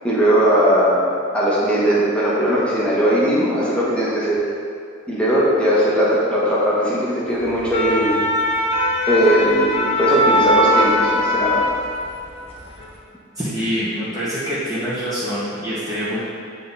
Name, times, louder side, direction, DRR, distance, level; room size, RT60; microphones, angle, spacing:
voice 1, 0.0-1.1 1.3-4.4 5.1-8.1 9.1-11.6, equal, 5° left, -8 dB, 1.4 m, -18 dB
sound 1, 7.5-12.3 12.6-12.8, left 1 dB, 30° left, 0.6 m, -20 dB
voice 2, 13.3-16.2, equal, 15° right, -13 dB, 1.5 m, -25 dB
9.2 x 3.8 x 4.1 m, 2.4 s
head